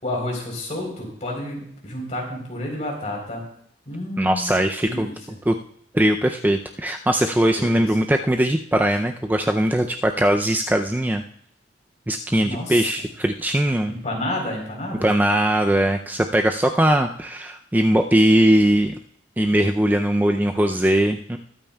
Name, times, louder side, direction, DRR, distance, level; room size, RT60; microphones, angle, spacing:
voice 1, 0.0-3.4 3.9-4.5 4.8-5.4 7.6-7.9 12.4-13.1 13.9-15.1, left 1 dB, 35° left, 0 dB, 3.7 m, -30 dB
voice 2, 4.2-5.1 5.5-5.6 5.9-11.2 12.1-13.9 15.0-18.9 19.4-21.4, right 1 dB, 10° right, 4 dB, 0.4 m, -20 dB
21.5 x 8.9 x 2.3 m, 0.66 s
head